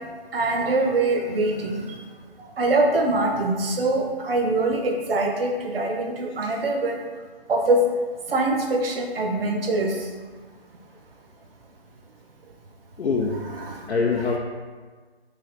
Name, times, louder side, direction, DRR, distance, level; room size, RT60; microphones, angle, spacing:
voice 1, 0.3-2.0 2.4-7.0 7.5-7.8 8.3-10.1 13.6-13.9, right 2 dB, 65° right, 2 dB, 0.6 m, -23 dB
voice 2, 13.0-13.4 13.9-14.4, left 4 dB, 90° left, -1 dB, 0.5 m, -24 dB
3.3 x 2.5 x 3.9 m, 1.5 s
figure-of-eight pair, 155°, 32 cm